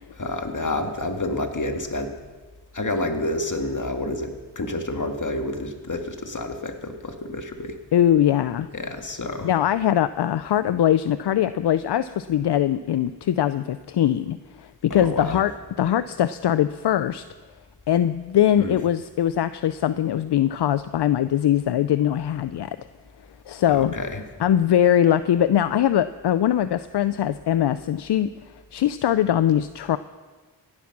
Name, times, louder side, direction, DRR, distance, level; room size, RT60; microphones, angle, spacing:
voice 1, 0.2-2.2 2.7-7.8 8.7-9.5 14.9-15.4 18.6-18.7 23.7-24.2, left 2 dB, 45° left, 5 dB, 2.0 m, -29 dB
voice 2, 7.9-8.7 9.4-15.5 15.8-17.2 17.9-22.8 23.5-23.9 24.4-28.3 28.7-30.0, left 11 dB, 75° left, 13 dB, 0.5 m, -21 dB
16.5 x 10.5 x 6.0 m, 1.3 s
cardioid pair, 45°, 41 cm